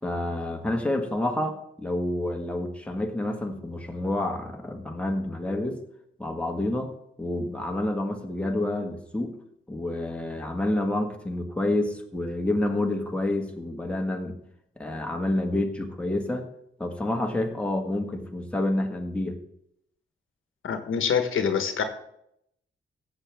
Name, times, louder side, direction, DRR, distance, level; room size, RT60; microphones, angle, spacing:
voice 1, 0.0-5.8 6.2-9.4 9.7-14.4 14.8-16.5 16.8-19.4, left 1 dB, 5° left, 2 dB, 1.6 m, -28 dB
voice 2, 20.6-21.8, left 7 dB, 75° left, 8 dB, 1.2 m, -25 dB
16.0 x 7.7 x 3.5 m, 0.75 s
cardioid pair, 95°, 21 cm